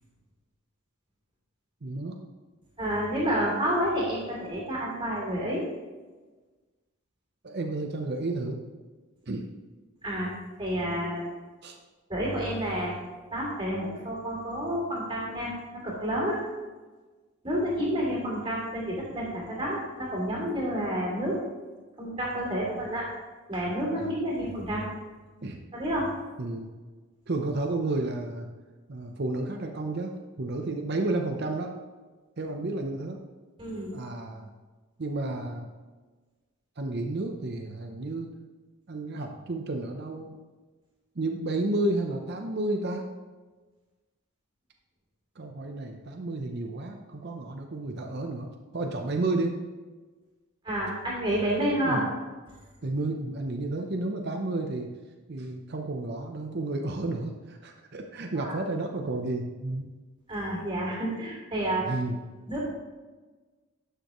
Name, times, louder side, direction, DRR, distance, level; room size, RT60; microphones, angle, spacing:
voice 1, 1.8-2.2 7.4-8.6 9.3-9.4 11.6-11.8 24.0-24.1 25.4-25.6 26.4-26.7 27.3-28.5 28.9-31.8 32.4-33.2 33.9-34.5 35.0-35.7 36.8-38.3 38.9-40.3 41.2-43.1 45.4-49.6 51.8-52.0 52.8-54.9 55.3-59.8 61.8-62.2, right 2 dB, 50° right, 3 dB, 0.6 m, -31 dB
voice 2, 2.8-5.6 10.0-10.3 10.6-11.2 12.1-13.0 13.3-16.4 17.4-21.4 22.0-23.1 23.5-24.9 25.7-26.1 33.6-33.9 50.6-52.0 58.4-58.6 60.3-61.9 62.5-62.6, equal, 25° right, -4 dB, 2.8 m, -29 dB
11.5 x 6.8 x 3.0 m, 1.3 s
head